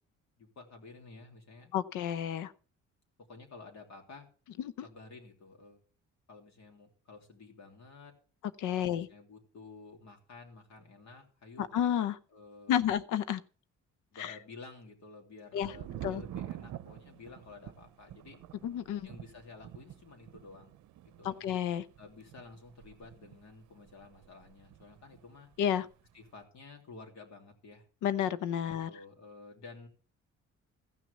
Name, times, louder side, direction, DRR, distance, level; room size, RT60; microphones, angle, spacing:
voice 1, 0.4-1.7 3.3-4.3 4.8-5.8 6.3-8.1 8.7-11.7 12.3-12.9 14.1-18.4 19.0-20.8 21.2-21.4 22.0-25.5 26.1-27.8 28.9-29.9, left 4 dB, 65° left, 3 dB, 3.3 m, -52 dB
voice 2, 1.7-2.5 4.6-4.9 8.6-9.1 11.6-12.2 12.7-13.4 14.2-14.3 15.5-15.7 16.0-16.2 18.6-19.1 21.2-21.8 25.6-25.9 28.0-28.9, left 9 dB, 90° left, 16 dB, 0.8 m, -31 dB
Thunder, 15.6-25.3 25.5-26.3, right 12 dB, 70° right, 0.7 m, -48 dB
14.5 x 6.2 x 7.1 m, 0.40 s
cardioid pair, 90°, 30 cm